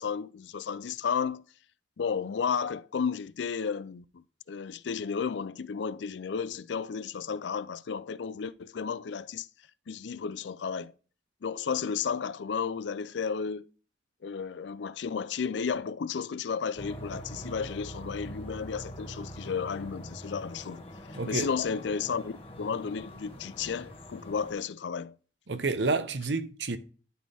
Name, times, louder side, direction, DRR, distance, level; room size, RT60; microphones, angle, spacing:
voice 1, 0.0-1.4 2.0-9.5 9.9-10.9 11.4-13.7 14.2-20.8 21.3-25.2, left 6 dB, 85° left, 0.4 m, -33 dB
sound 1, 16.8-24.5, equal, 30° left, 1.5 m, -44 dB
voice 2, 21.2-21.5 25.5-26.8, right 3 dB, 80° right, 0.9 m, -29 dB
12.5 x 4.2 x 3.5 m
head